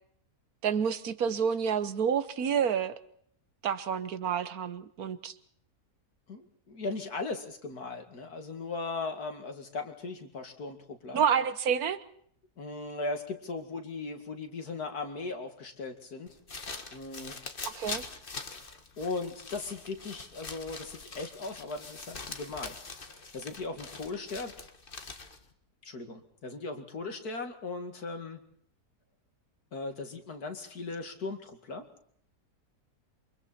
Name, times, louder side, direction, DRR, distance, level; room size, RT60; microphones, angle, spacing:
voice 1, 0.6-3.0 3.6-5.3 11.1-12.0 17.6-18.0, right 7 dB, 70° right, 13 dB, 1.5 m, -29 dB
voice 2, 6.3-11.2 12.6-16.4 16.9-17.4 19.0-22.7 23.1-24.5 25.8-28.4 29.7-31.9, left 3 dB, 80° left, 6 dB, 2.7 m, -38 dB
sound 1, 16.3-25.5, left 4 dB, 35° left, 1.6 m, -43 dB
28.0 x 24.5 x 4.3 m, 0.65 s
omnidirectional pair, 1.6 m